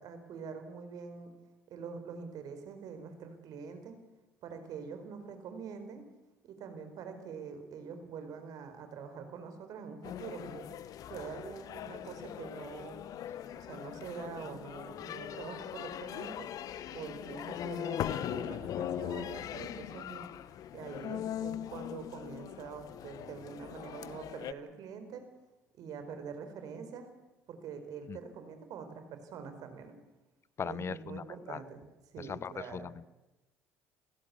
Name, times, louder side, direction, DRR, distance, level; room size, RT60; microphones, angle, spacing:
voice 1, 0.0-1.3 1.7-4.0 4.4-6.1 6.4-10.7 11.1-13.0 13.6-16.5 16.9-20.3 20.7-25.3 25.8-27.1 27.5-29.9 30.6-31.8 32.1-32.9, right 6 dB, 60° right, 8 dB, 4.6 m, -45 dB
sound 1, 10.0-24.5, left 10 dB, 55° left, 1.1 m, -40 dB
voice 2, 30.6-31.6 32.2-33.1, left 7 dB, 35° left, 21 dB, 0.8 m, -39 dB
29.5 x 16.0 x 8.4 m, 1.0 s
hypercardioid pair, 60°, 7 cm